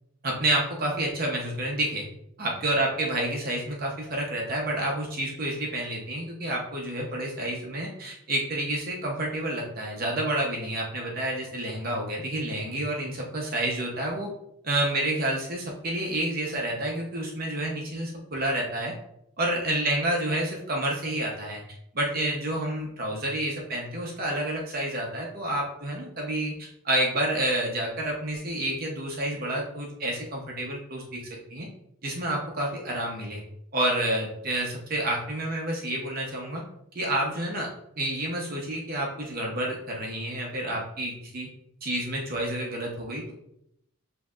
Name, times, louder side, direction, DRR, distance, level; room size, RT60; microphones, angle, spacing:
voice 1, 0.2-2.0 2.4-14.3 14.6-18.9 19.4-21.6 21.9-31.2 31.5-31.7 32.0-33.4 33.7-36.6 36.9-37.7 38.0-41.5 41.8-43.3, right 1 dB, 45° right, -1 dB, 0.8 m, -29 dB
7.5 x 2.8 x 2.4 m, 0.77 s
head